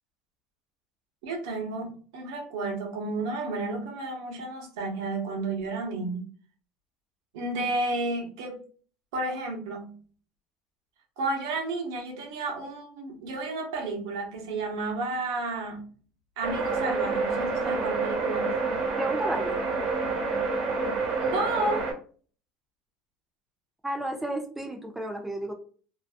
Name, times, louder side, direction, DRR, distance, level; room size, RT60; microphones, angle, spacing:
voice 1, 1.2-6.3 7.3-8.6 9.1-9.9 11.2-15.9 16.4-18.6 21.2-21.9, right 2 dB, 85° right, 0.8 m, -32 dB
sound 1, 16.4-21.9, right 3 dB, 40° right, 1.3 m, -28 dB
voice 2, 19.0-19.6 23.8-25.5, right 1 dB, 10° right, 0.4 m, -32 dB
2.5 x 2.2 x 2.5 m
supercardioid pair, 125°, 2 cm